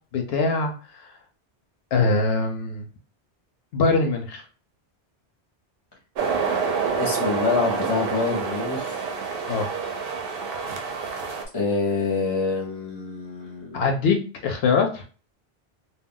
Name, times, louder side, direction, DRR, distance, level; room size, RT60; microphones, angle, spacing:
voice 1, 0.1-1.1 1.9-2.9 3.7-4.4 9.5-9.7 13.7-14.2 14.4-15.0, left 4 dB, 70° left, 4 dB, 0.8 m, -22 dB
sound 1, 6.2-11.4, right 5 dB, 65° right, 0.7 m, -27 dB
voice 2, 7.0-9.1 11.5-13.8, left 4 dB, 30° left, -4 dB, 0.6 m, -26 dB
2.2 x 2.1 x 3.6 m, 0.37 s
omnidirectional pair, 1.1 m